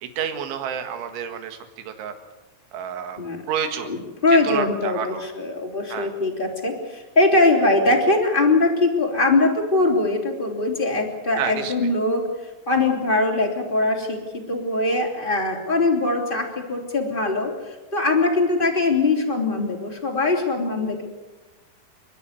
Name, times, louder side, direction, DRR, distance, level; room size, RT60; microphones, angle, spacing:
voice 1, 0.0-2.1 2.7-3.2 3.5-3.9 4.4-5.3 5.9-6.1 11.4-11.7, right 8 dB, 75° right, 7 dB, 4.1 m, -29 dB
voice 2, 4.2-12.3 12.7-21.0, left 2 dB, 15° left, 0 dB, 2.5 m, -21 dB
29.0 x 12.0 x 9.5 m, 1.2 s
omnidirectional pair, 5.6 m